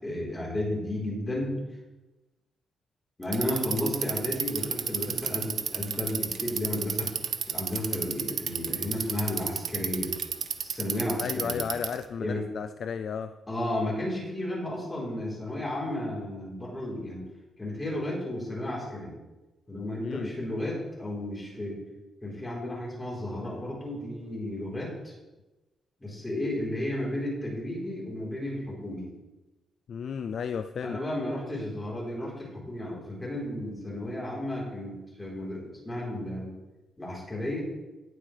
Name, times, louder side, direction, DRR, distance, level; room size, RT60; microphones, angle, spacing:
voice 1, 0.0-1.6 3.2-7.1 7.5-10.1 10.6-11.6 12.2-12.5 13.5-17.2 17.6-19.1 19.7-21.8 22.2-25.1 26.0-29.1 30.8-36.5 37.0-37.6, left 1 dB, 15° left, -4 dB, 3.9 m, -33 dB
Bicycle, 3.2-12.0, right 8 dB, 60° right, 0.7 m, -31 dB
voice 2, 11.2-13.4 20.0-20.3 29.9-31.0, left 7 dB, 55° left, 10 dB, 0.3 m, -33 dB
18.5 x 7.6 x 3.3 m, 1.1 s
wide cardioid pair, 165°, 0 cm